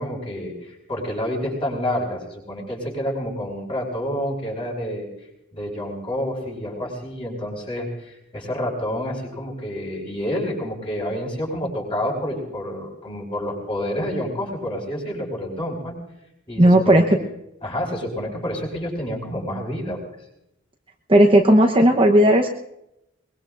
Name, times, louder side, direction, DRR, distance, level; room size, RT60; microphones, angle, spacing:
voice 1, 0.0-5.1 5.5-15.9 16.5-17.2 17.6-20.0, equal, 25° left, -1 dB, 5.3 m, -28 dB
voice 2, 16.6-17.0 21.1-22.5, right 1 dB, 25° right, 1 dB, 1.0 m, -14 dB
23.5 x 21.5 x 2.6 m, 0.82 s
head